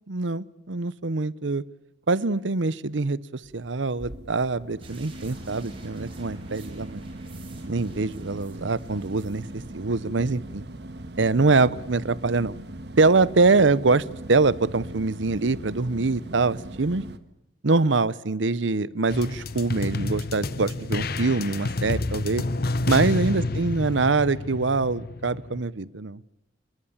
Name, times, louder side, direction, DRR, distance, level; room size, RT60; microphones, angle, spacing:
voice 1, 0.1-1.6 2.1-7.0 7.7-9.4 9.7-10.6 11.2-12.6 13.0-17.0 17.6-22.4 22.9-26.2, right 3 dB, 85° right, 19 dB, 0.8 m, -24 dB
sound 1, 3.4-17.2, right 1 dB, 60° right, 1.5 m, -40 dB
sound 2, 4.8-9.7, right 5 dB, 30° right, 6.2 m, -53 dB
sound 3, 19.1-25.6, left 2 dB, 55° left, 0.9 m, -29 dB
28.0 x 22.0 x 7.3 m, 0.89 s
head